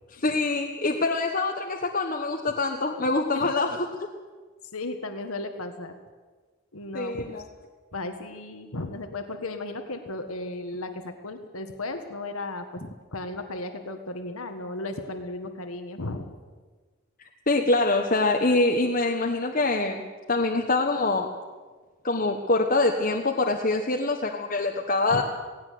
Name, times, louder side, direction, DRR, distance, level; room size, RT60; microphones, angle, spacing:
voice 1, 0.1-4.1 6.9-7.4 17.5-20.0 20.3-21.3 22.0-25.2, left 2 dB, 40° left, 2 dB, 1.2 m, -25 dB
voice 2, 4.7-5.9 6.7-7.2 7.9-12.8 13.1-16.3 25.1-25.2, left 2 dB, 80° left, 7 dB, 1.7 m, -35 dB
18.0 x 17.0 x 9.4 m, 1.4 s
head